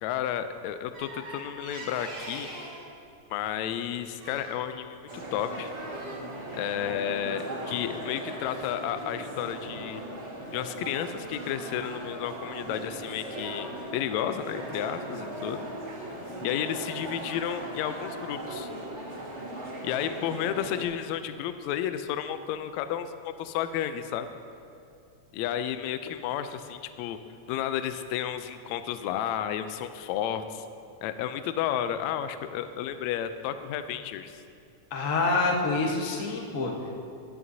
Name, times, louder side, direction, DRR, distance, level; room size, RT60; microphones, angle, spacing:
voice 1, 0.0-2.5 3.3-5.0 5.3-5.7 6.5-10.0 10.5-15.7 16.4-18.7 19.8-24.3 25.3-27.2 27.5-30.6 31.0-34.4, left 10 dB, 80° left, 10 dB, 1.7 m, -32 dB
sound 1, 0.9-2.8 4.2-4.6 5.2-6.2, right 2 dB, 75° right, 4.3 m, -42 dB
sound 2, 5.1-20.8, right 1 dB, 30° right, 1.7 m, -38 dB
voice 2, 34.9-36.9, left 3 dB, 60° left, 0 dB, 0.8 m, -27 dB
17.0 x 11.0 x 2.7 m, 2.5 s
omnidirectional pair, 3.4 m